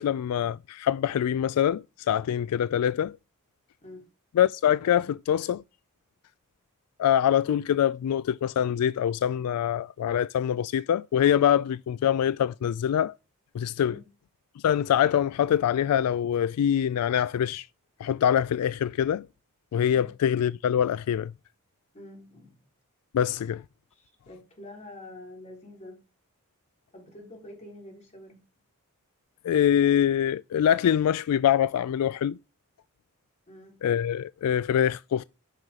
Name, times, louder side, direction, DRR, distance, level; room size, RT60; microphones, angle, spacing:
voice 1, 0.0-3.2 4.4-5.6 7.0-13.1 13.5-14.0 14.6-17.7 18.0-19.3 19.7-21.3 23.1-23.6 29.4-32.4 33.8-35.2, left 9 dB, 80° left, 0.3 m, -24 dB
voice 2, 21.9-22.6 23.9-26.0 26.9-28.4 33.5-33.8, left 1 dB, 30° left, 3.5 m, -46 dB
9.3 x 5.8 x 3.6 m
head